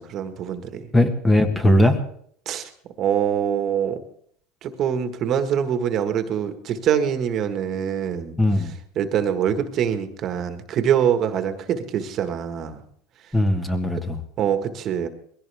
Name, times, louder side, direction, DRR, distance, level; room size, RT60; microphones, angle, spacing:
voice 1, 0.1-0.8 2.4-2.7 3.0-4.0 4.6-8.3 8.9-12.8 14.4-15.1, right 8 dB, 45° right, 7 dB, 1.6 m, -24 dB
voice 2, 0.9-2.0 8.4-8.7 13.3-14.2, left 1 dB, 10° left, 6 dB, 1.5 m, -19 dB
21.0 x 16.5 x 3.5 m, 0.64 s
supercardioid pair, 130°, 0 cm